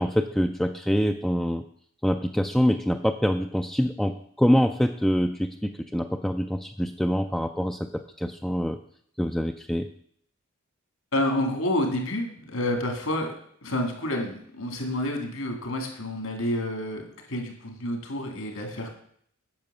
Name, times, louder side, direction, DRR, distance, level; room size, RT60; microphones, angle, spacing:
voice 1, 0.0-1.6 2.0-8.8 9.2-9.9, equal, ahead, 6 dB, 0.3 m, -25 dB
voice 2, 11.1-13.3 13.6-18.9, left 1 dB, 70° left, 3 dB, 2.3 m, -29 dB
8.8 x 6.2 x 6.7 m, 0.64 s
head